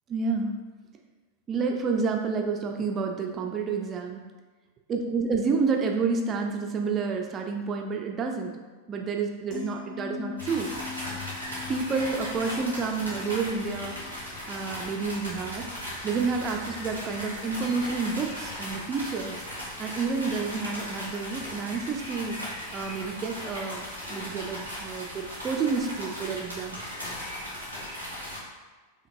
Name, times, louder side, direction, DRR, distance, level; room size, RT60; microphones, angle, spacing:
voice 1, 0.1-0.5 1.5-4.2 4.9-8.6 8.9-10.7 11.7-15.7 16.0-19.4 19.8-22.4 22.7-26.8, right 4 dB, 25° right, 2 dB, 0.4 m, -29 dB
sound 1, 9.5-15.8 16.1-16.4, left 8 dB, 40° left, 0.9 m, -43 dB
Rain On An Umbrella & Birds Ambience, 10.4-28.4, left 1 dB, 90° left, 1.3 m, -37 dB
5.1 x 2.8 x 2.6 m, 1.3 s
figure-of-eight pair, 90°, 0 cm